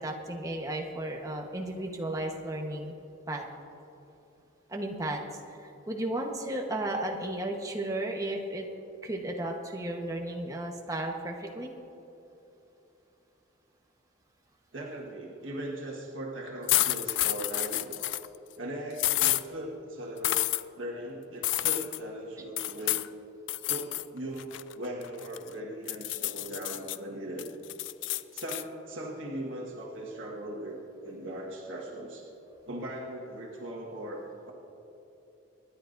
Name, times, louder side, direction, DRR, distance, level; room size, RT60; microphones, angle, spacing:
voice 1, 0.0-2.9 3.3-3.4 4.7-8.7 9.0-11.7, right 1 dB, 20° right, 1 dB, 1.1 m, -34 dB
voice 2, 14.7-18.1 18.6-20.4 20.8-23.1 23.7-27.5 28.3-32.2 32.7-34.5, right 1 dB, 90° right, -2 dB, 1.5 m, -39 dB
sound 1, 16.7-18.3 19.0-19.4 20.2-20.6 21.4-22.0 22.6-23.1 23.5-24.1 24.4-25.5 25.9-27.0 27.4-28.6, left 16 dB, 70° left, 0.3 m, -29 dB
25.5 x 10.5 x 2.6 m, 3.0 s
head